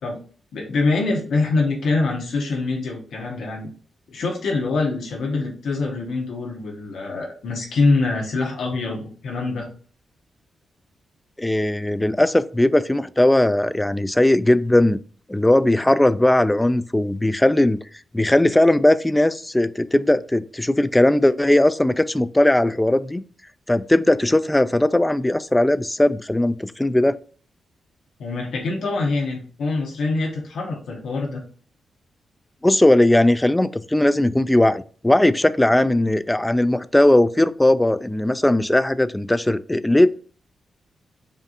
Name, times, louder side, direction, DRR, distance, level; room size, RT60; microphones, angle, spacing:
voice 1, 0.5-3.7 4.1-9.7 28.2-31.4, left 3 dB, 75° left, 0 dB, 0.9 m, -24 dB
voice 2, 11.4-15.0 15.3-17.8 18.1-23.2 23.7-27.2 32.6-40.1, left 1 dB, 15° left, 15 dB, 0.3 m, -18 dB
5.2 x 2.6 x 2.5 m, 0.41 s
supercardioid pair, 45°, 0 cm